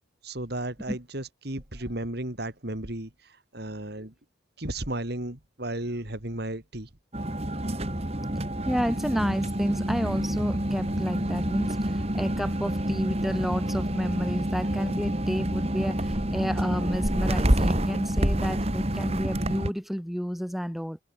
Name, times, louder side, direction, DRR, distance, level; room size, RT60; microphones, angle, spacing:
voice 1, 0.2-3.1 3.5-4.1 4.6-6.9, right 1 dB, 55° right, 3.1 m, -34 dB
sound 1, 7.1-19.7, right 1 dB, 30° right, 2.6 m, -28 dB
voice 2, 8.6-21.0, equal, ahead, 4.3 m, -30 dB
head